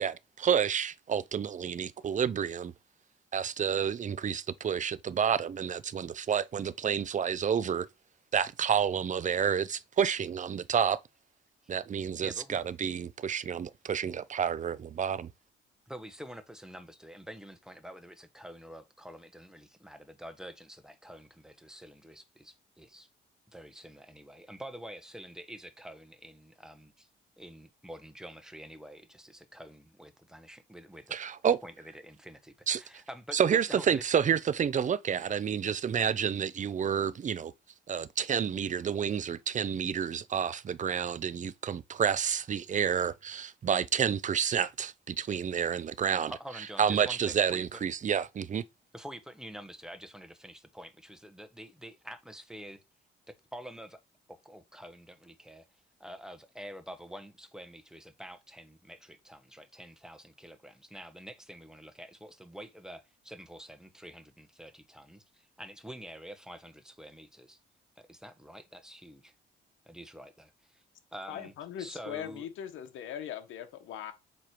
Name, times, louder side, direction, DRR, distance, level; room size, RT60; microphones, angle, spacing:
voice 1, 0.0-2.7 3.3-7.9 8.3-11.0 11.7-15.3 31.1-31.6 32.7-32.8 33.3-37.5 37.9-46.3 46.8-48.6, right 8 dB, 40° right, 0.5 m, -29 dB
voice 2, 12.2-12.6 15.9-23.1 23.5-27.1 27.4-31.2 31.6-34.1 46.3-47.8 48.9-52.8 53.3-54.0 54.3-55.6 56.0-67.6 68.0-69.3 69.9-70.8 71.1-72.5, equal, 5° right, 1.2 m, -47 dB
voice 3, 71.3-74.1, left 10 dB, 80° left, 1.1 m, -40 dB
7.5 x 3.3 x 4.5 m
cardioid pair, 90°, 20 cm